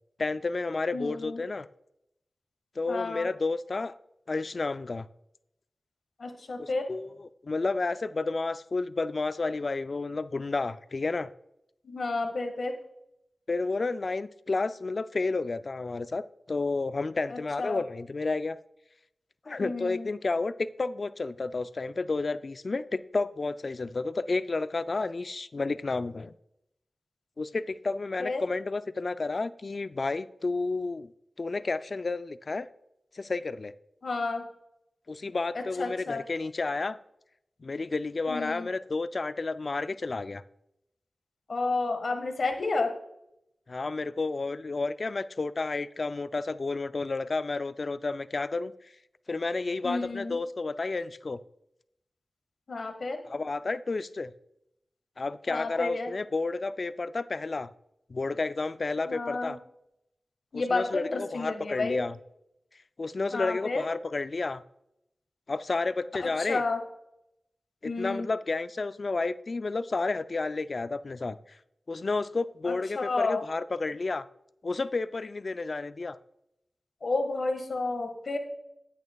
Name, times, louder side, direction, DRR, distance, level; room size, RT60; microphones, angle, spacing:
voice 1, 0.2-1.7 2.8-3.9 4.3-5.1 6.6-7.1 7.4-11.3 13.5-18.6 19.5-26.3 27.4-31.1 31.4-32.7 33.1-33.7 35.1-37.0 37.6-40.4 43.7-48.7 49.3-51.4 53.3-54.3 55.2-57.7 58.1-59.6 60.5-62.2 63.0-64.6 65.5-66.6 67.8-71.4 71.9-74.3 74.6-76.2, left 3 dB, 60° left, 13 dB, 0.4 m, -31 dB
voice 2, 0.9-1.4 2.9-3.3 6.2-6.9 11.8-12.7 17.3-17.8 19.6-20.1 28.2-28.4 34.0-34.4 35.5-36.2 38.3-38.7 41.5-42.9 49.8-50.4 52.7-53.2 55.5-56.1 59.0-59.5 60.5-62.0 63.3-63.8 66.2-66.8 67.8-68.3 72.7-73.4 77.0-78.4, left 3 dB, 75° left, 4 dB, 1.5 m, -31 dB
10.5 x 9.1 x 2.3 m, 0.81 s
wide cardioid pair, 60°, 0 cm